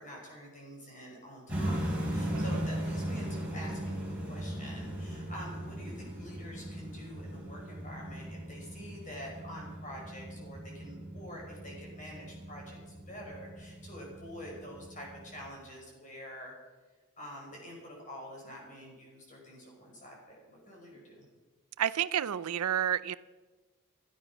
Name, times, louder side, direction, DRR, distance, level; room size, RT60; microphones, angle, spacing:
voice 1, 0.0-16.5 17.2-21.2, equal, 35° left, -2 dB, 5.6 m, -47 dB
sound 1, 1.5-15.5, right 1 dB, 5° right, 4.8 m, -38 dB
voice 2, 2.3-2.7 21.8-23.1, right 10 dB, 85° right, 16 dB, 0.5 m, -30 dB
16.0 x 12.0 x 6.1 m, 1.3 s
head